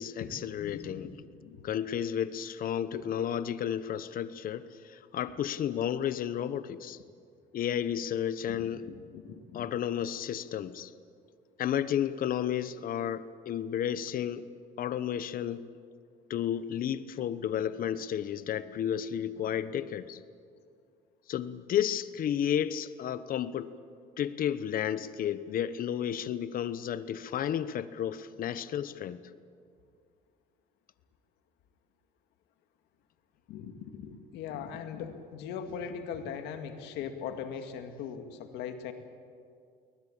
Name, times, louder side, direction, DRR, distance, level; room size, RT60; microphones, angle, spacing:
voice 1, 0.0-1.1 1.6-7.0 7.5-8.8 9.5-10.9 11.6-14.4 14.8-15.6 16.3-20.2 21.3-23.7 24.2-29.2, left 9 dB, 55° left, 15 dB, 1.0 m, -32 dB
voice 2, 0.6-1.7 2.9-3.0 8.5-9.7 33.5-38.9, left 7 dB, 90° left, 7 dB, 2.1 m, -40 dB
22.0 x 19.5 x 8.8 m, 2.3 s
cardioid pair, 110°, 17 cm